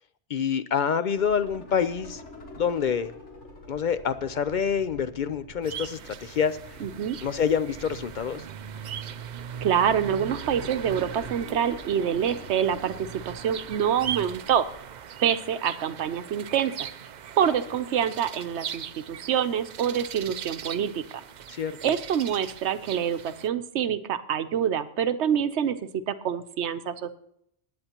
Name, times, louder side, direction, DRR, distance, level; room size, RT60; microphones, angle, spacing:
voice 1, 0.3-2.2 2.6-3.1 3.7-6.8 7.2-8.5 21.5-21.9, left 7 dB, 55° left, 12 dB, 0.6 m, -27 dB
sound 1, 1.1-14.9, left 1 dB, 90° left, 2.0 m, -47 dB
sound 2, 5.6-23.5, right 8 dB, 55° right, 0.5 m, -39 dB
voice 2, 6.8-7.2 9.6-14.7 15.2-16.9 17.4-21.2 21.8-27.1, right 8 dB, 75° right, 11 dB, 1.0 m, -26 dB
19.5 x 9.6 x 2.9 m, 0.75 s
omnidirectional pair, 1.1 m